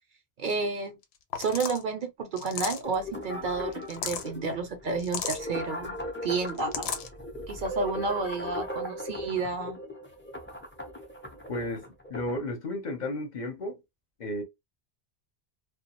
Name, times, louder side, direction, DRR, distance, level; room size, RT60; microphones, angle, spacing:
voice 1, 0.4-1.0 1.3-5.9 6.2-6.9 7.5-9.8, right 4 dB, 60° right, 0.6 m, -31 dB
sound 1, 1.0-1.1 1.3-1.8 2.4-2.9 3.7-4.3 5.0-5.5 6.4-7.1, left 8 dB, 90° left, 0.8 m, -34 dB
sound 2, 2.8-12.4, equal, 15° left, 0.5 m, -38 dB
voice 2, 11.5-13.8 14.2-14.4, left 1 dB, 50° left, 0.8 m, -33 dB
2.3 x 2.1 x 2.9 m
omnidirectional pair, 1.1 m